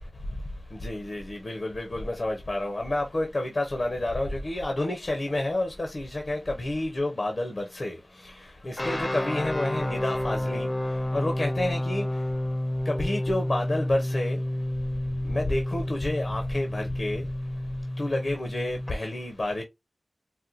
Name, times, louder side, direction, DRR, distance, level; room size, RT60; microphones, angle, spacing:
voice 1, 0.8-8.0 8.6-10.7 11.1-12.1 12.9-14.4 15.3-17.2 18.0-19.6, left 1 dB, 60° left, 0.7 m, -29 dB
sound 1, 8.8-18.9, left 1 dB, 25° left, 0.6 m, -30 dB
4.1 x 2.2 x 2.5 m
cardioid pair, 45°, 0 cm